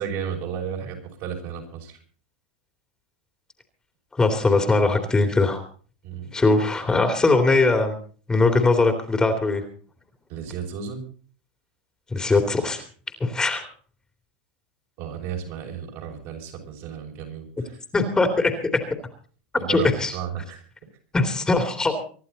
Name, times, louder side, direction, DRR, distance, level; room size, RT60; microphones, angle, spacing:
voice 1, 0.0-2.0 6.0-6.3 10.3-11.0 15.0-17.8 19.6-20.6, right 7 dB, 55° right, 1 dB, 6.2 m, -33 dB
voice 2, 4.1-5.6 6.3-8.0 8.3-9.6 12.1-12.8 13.2-13.7 17.9-18.8 19.7-20.1 21.1-21.9, left 3 dB, 15° left, 5 dB, 2.7 m, -20 dB
24.5 x 11.5 x 4.1 m, 0.43 s
hypercardioid pair, 115°, 5 cm